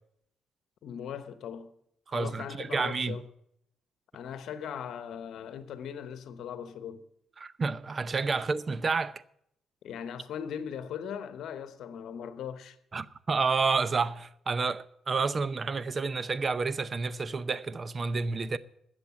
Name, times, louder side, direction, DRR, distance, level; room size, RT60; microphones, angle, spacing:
voice 1, 0.8-1.7 2.1-3.3 4.1-7.0 8.3-8.5 9.8-12.8, left 8 dB, 75° left, 1.0 m, -39 dB
voice 2, 2.1-3.2 7.4-9.2 12.9-18.6, right 4 dB, 35° right, 0.6 m, -30 dB
13.0 x 8.0 x 8.2 m
cardioid pair, 90°, 0 cm